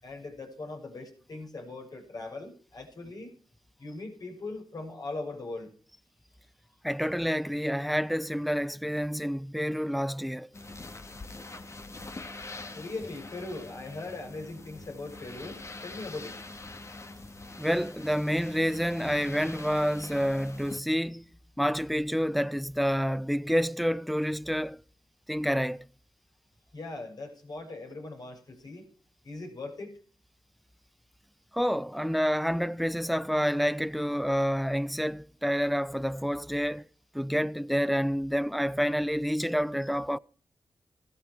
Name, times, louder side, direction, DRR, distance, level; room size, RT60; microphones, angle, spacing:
voice 1, 0.0-3.3 3.8-5.7 12.7-16.4 26.7-28.9 29.2-29.9, left 2 dB, 60° left, 6.3 m, -40 dB
voice 2, 6.8-10.5 17.6-21.3 21.6-24.8 25.3-25.9 31.5-36.8 37.1-40.2, equal, ahead, 0.7 m, -28 dB
sound 1, 10.5-20.8, left 2 dB, 40° left, 2.0 m, -44 dB
16.0 x 12.0 x 4.7 m
cardioid pair, 60°, 8 cm